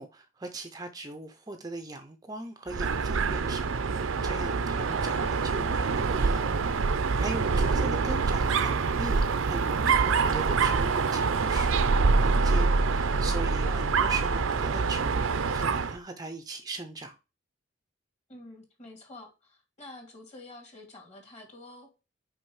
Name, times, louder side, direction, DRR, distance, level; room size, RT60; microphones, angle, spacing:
voice 1, 0.0-6.5 6.7-17.2, right 3 dB, 20° right, 0.5 m, -39 dB
Dog, 2.7-16.0, right 4 dB, 70° right, 0.6 m, -25 dB
voice 2, 4.8-5.4 7.6-7.9 13.6-14.1 18.3-21.9, left 2 dB, 35° left, 2.5 m, -48 dB
6.0 x 5.1 x 4.7 m
head